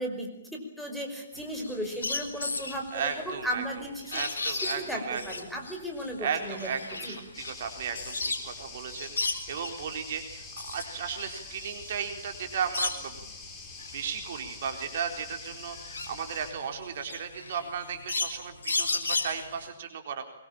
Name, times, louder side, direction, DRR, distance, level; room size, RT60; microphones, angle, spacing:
voice 1, 0.0-4.2 4.5-6.6 7.0-7.2, equal, ahead, 1 dB, 5.3 m, -35 dB
sound 1, 1.3-8.6 8.9-9.9 10.3-13.3 13.7-19.7, left 3 dB, 70° left, 4.1 m, -35 dB
voice 2, 2.9-3.6 4.1-5.2 6.2-10.4 10.7-13.3 13.9-20.2, right 7 dB, 50° right, 5 dB, 4.1 m, -35 dB
sound 2, 7.3-16.5, left 3 dB, 20° left, 4.9 m, -45 dB
24.0 x 22.5 x 8.8 m, 0.79 s
figure-of-eight pair, 125°, 0 cm